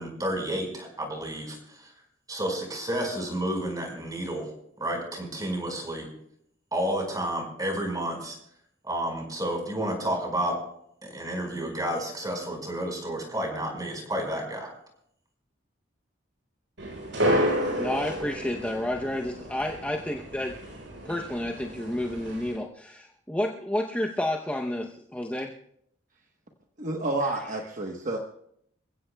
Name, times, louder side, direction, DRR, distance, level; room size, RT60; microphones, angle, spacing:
voice 1, 0.0-1.9 2.3-4.5 4.8-6.1 6.7-8.4 8.8-10.5 11.0-14.7, right 1 dB, 20° right, 2 dB, 4.8 m, -31 dB
sound 1, 16.8-22.5, equal, 75° right, 8.0 m, -31 dB
voice 2, 17.8-20.5 21.0-25.5 27.2-27.4, left 1 dB, 5° left, 0 dB, 0.7 m, -30 dB
voice 3, 26.8-28.2, right 2 dB, 40° right, 2 dB, 1.1 m, -29 dB
28.0 x 16.0 x 2.3 m, 0.71 s
head